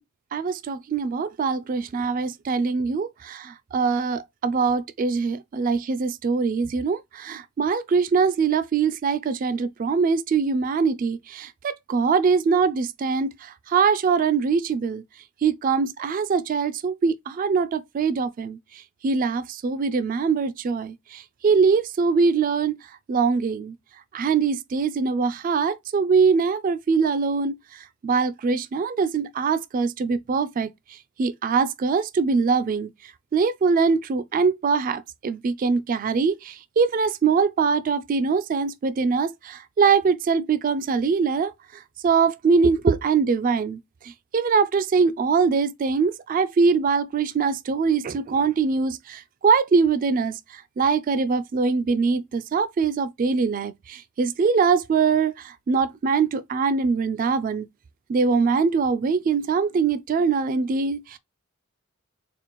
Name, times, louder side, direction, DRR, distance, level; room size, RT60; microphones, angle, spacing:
voice 1, 0.3-15.0 15.4-18.6 19.0-22.7 23.1-23.7 24.1-27.5 28.0-30.7 31.2-32.9 33.3-41.5 42.0-43.8 44.0-50.4 50.8-57.7 58.1-61.2, right 5 dB, 40° right, 0.3 m, -23 dB
4.2 x 2.4 x 2.9 m
head